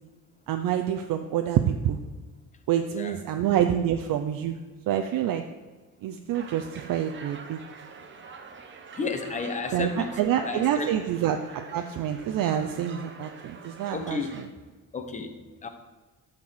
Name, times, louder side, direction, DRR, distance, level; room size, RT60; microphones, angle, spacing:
voice 1, 0.5-2.0 2.7-4.6 4.9-5.4 6.0-7.6 9.7-14.2, right 10 dB, 75° right, 6 dB, 0.7 m, -27 dB
sound 1, 6.3-14.5, right 5 dB, 35° right, 0.9 m, -46 dB
voice 2, 9.0-10.9 13.8-14.4 14.9-15.7, left 4 dB, 20° left, 6 dB, 0.9 m, -33 dB
12.5 x 4.5 x 7.7 m, 1.3 s
cardioid pair, 165°, 33 cm